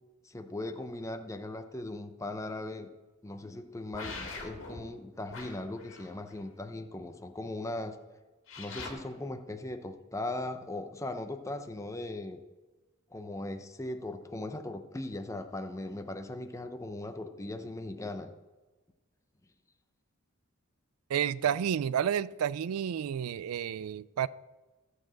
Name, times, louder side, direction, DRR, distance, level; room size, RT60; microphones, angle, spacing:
voice 1, 0.2-2.9 3.2-7.9 8.6-12.4 13.1-18.3, left 2 dB, 15° left, 6 dB, 0.6 m, -39 dB
sound 1, 3.9-4.8 5.3-6.3 8.5-8.9, left 3 dB, 65° left, 2.0 m, -42 dB
voice 2, 21.1-24.3, right 9 dB, 85° right, 19 dB, 0.4 m, -30 dB
12.5 x 4.8 x 7.5 m, 1.2 s
head